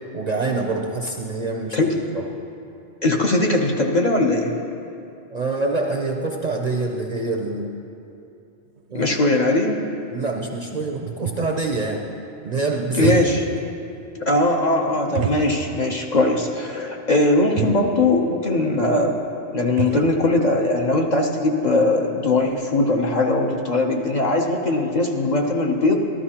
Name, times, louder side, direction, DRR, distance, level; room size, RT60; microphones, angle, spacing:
voice 1, 0.1-2.3 5.3-7.7 8.9-9.1 10.1-12.1 12.4-13.1, right 3 dB, 45° right, 1 dB, 0.6 m, -26 dB
voice 2, 3.0-4.5 8.9-9.8 12.9-13.4 14.1-19.2 19.5-25.9, left 2 dB, 45° left, 0 dB, 0.8 m, -20 dB
sound 1, 8.8-8.9 9.2-9.3 10.0-10.1 10.3-11.8 12.8-13.7 14.0-14.1 15.1-16.0 16.3-16.4 17.2-17.3 17.5-17.9 19.2-19.3 19.5-20.1, right 8 dB, 75° right, 0.9 m, -29 dB
13.5 x 12.5 x 2.9 m, 2.7 s
omnidirectional pair, 1.2 m